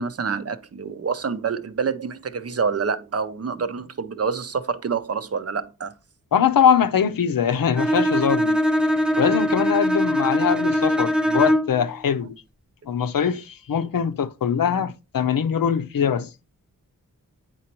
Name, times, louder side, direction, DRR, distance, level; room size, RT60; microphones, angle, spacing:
voice 1, 0.0-5.9, right 5 dB, 45° right, 0.6 m, -27 dB
voice 2, 6.3-8.6 9.2-12.3 12.9-16.3, left 7 dB, 80° left, 0.7 m, -22 dB
Bowed string instrument, 7.8-11.9, equal, 5° right, 0.5 m, -21 dB
9.1 x 4.1 x 3.0 m
wide cardioid pair, 95°, 33 cm